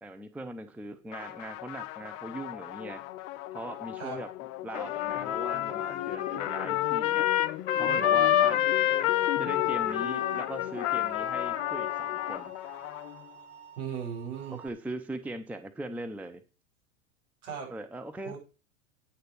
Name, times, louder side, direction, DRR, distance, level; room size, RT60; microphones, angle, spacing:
voice 1, 0.0-3.0 3.5-4.3 4.6-7.3 7.7-8.6 9.4-12.5 14.5-16.4 17.7-18.4, right 2 dB, 5° right, 10 dB, 0.6 m, -40 dB
sound 1, 1.1-13.7, left 15 dB, 35° left, 0.7 m, -39 dB
Trumpet, 4.7-12.4, left 12 dB, 55° left, 1.1 m, -28 dB
sound 2, 9.7-14.7, right 9 dB, 25° right, 2.8 m, -51 dB
voice 2, 13.8-14.6 17.4-17.8 18.2-18.4, right 7 dB, 65° right, -2 dB, 6.8 m, -37 dB
9.5 x 6.7 x 6.3 m, 0.33 s
hypercardioid pair, 100°, 40 cm